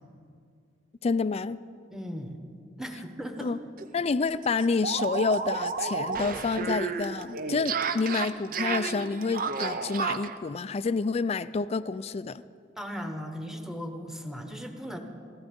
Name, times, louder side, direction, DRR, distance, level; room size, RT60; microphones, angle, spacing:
voice 1, 1.0-1.6 3.4-3.6 3.9-12.4, left 4 dB, 35° left, 16 dB, 0.3 m, -28 dB
voice 2, 1.9-2.4 2.8-3.5 12.8-15.0, equal, 5° right, 5 dB, 1.1 m, -37 dB
sound 1, 3.4-3.5 3.8-3.9 4.2-10.4, right 5 dB, 50° right, 0.7 m, -32 dB
15.5 x 14.5 x 5.3 m, 2.3 s
head